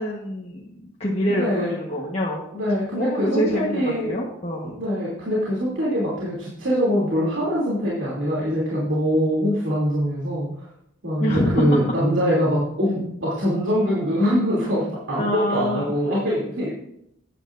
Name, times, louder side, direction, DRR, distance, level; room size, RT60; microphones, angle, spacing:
voice 1, 0.0-2.4 3.0-4.7 11.2-11.8 15.2-15.9, equal, 35° left, -4 dB, 1.3 m, -26 dB
voice 2, 1.3-1.8 2.5-4.1 4.6-10.7 11.0-16.7, equal, 70° right, -7 dB, 3.0 m, -23 dB
13.5 x 9.9 x 2.6 m, 0.77 s
head